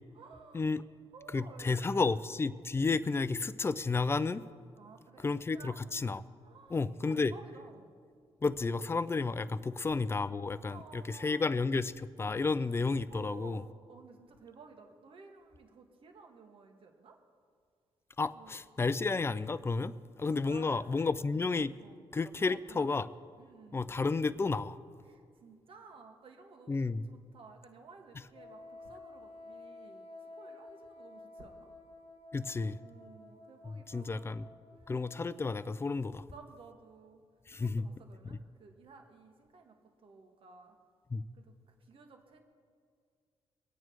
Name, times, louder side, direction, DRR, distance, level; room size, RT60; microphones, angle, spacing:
voice 1, 0.1-0.7 1.1-2.1 4.7-5.8 6.4-6.8 7.1-7.9 9.5-9.9 10.5-11.6 13.1-17.2 18.3-18.6 20.4-22.0 22.4-22.9 23.4-24.0 25.0-26.9 27.3-31.7 32.8-34.4 34.7-34.9 36.3-37.2 37.5-40.8 41.3-42.4, right 4 dB, 60° right, 3 dB, 1.7 m, -55 dB
voice 2, 1.3-4.4 5.2-6.2 6.7-7.3 8.4-13.6 18.2-21.7 22.1-23.1 23.7-24.8 26.7-27.0 32.3-32.8 33.6-34.4 34.9-36.3 37.5-37.8 38.3-38.4 41.1-41.2, left 4 dB, 25° left, 15 dB, 0.5 m, -32 dB
Wind instrument woodwind instrument, 28.3-35.7, left 2 dB, 70° left, 1.1 m, -52 dB
23.0 x 8.9 x 4.7 m, 2.1 s
cardioid pair, 105°, 10 cm